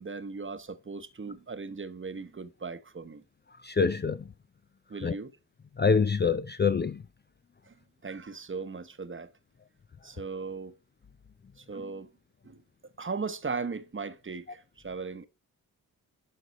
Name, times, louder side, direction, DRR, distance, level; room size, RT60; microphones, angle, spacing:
voice 1, 0.0-3.2 4.9-5.3 7.7-7.8 8.0-9.3 10.0-10.7 11.6-12.1 12.4-12.6 13.0-15.3, right 4 dB, 30° right, 1.0 m, -38 dB
voice 2, 3.6-4.2 5.0-5.1 5.8-7.0, left 5 dB, 25° left, 0.5 m, -25 dB
11.0 x 4.0 x 4.0 m
supercardioid pair, 45°, 39 cm